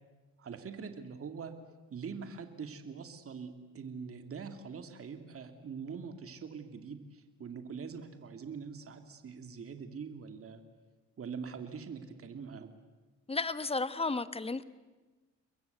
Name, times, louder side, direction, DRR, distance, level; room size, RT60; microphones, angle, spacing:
voice 1, 0.4-1.6 1.9-10.6 11.2-12.7, right 6 dB, 50° right, 7 dB, 2.6 m, -43 dB
voice 2, 13.3-14.6, left 3 dB, 20° left, 13 dB, 1.3 m, -33 dB
30.0 x 22.0 x 8.1 m, 1.2 s
cardioid pair, 90°, 30 cm